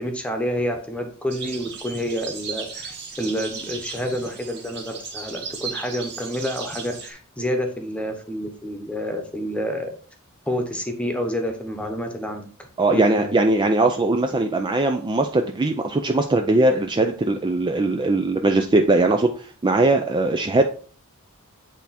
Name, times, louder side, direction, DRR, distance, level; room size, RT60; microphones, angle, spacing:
voice 1, 0.0-9.9 10.5-12.5 12.9-13.3, equal, 5° left, 4 dB, 1.0 m, -28 dB
sound 1, 1.3-7.1, right 5 dB, 50° right, 1.8 m, -36 dB
voice 2, 12.8-20.7, right 2 dB, 20° right, 5 dB, 0.4 m, -20 dB
8.2 x 3.5 x 4.2 m, 0.42 s
head